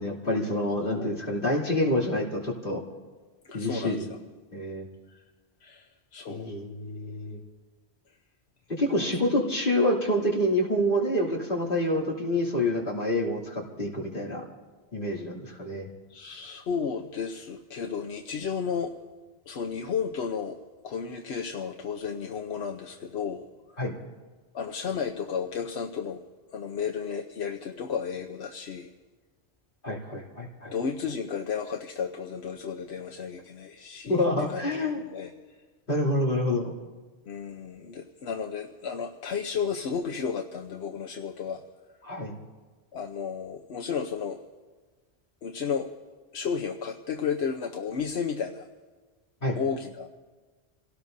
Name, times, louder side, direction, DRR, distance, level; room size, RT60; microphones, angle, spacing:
voice 1, 0.0-2.8 3.5-4.1 4.5-4.9 6.3-7.4 8.7-14.4 14.9-15.9 23.8-23.9 29.8-30.7 34.1-35.0 35.9-36.7 42.0-42.4 49.4-49.6, left 1 dB, 55° left, -4 dB, 3.1 m, -27 dB
voice 2, 3.4-4.1 5.1-5.2 5.6-6.5 8.9-9.1 15.4-15.7 16.1-18.9 19.5-20.6 20.8-23.4 24.5-26.2 26.5-28.9 30.7-34.6 35.1-35.3 37.3-41.6 42.9-44.4 45.4-45.9 46.3-48.7 49.6-50.1, left 6 dB, 85° left, 4 dB, 1.1 m, -33 dB
28.0 x 18.0 x 2.7 m, 1.3 s
omnidirectional pair, 1.1 m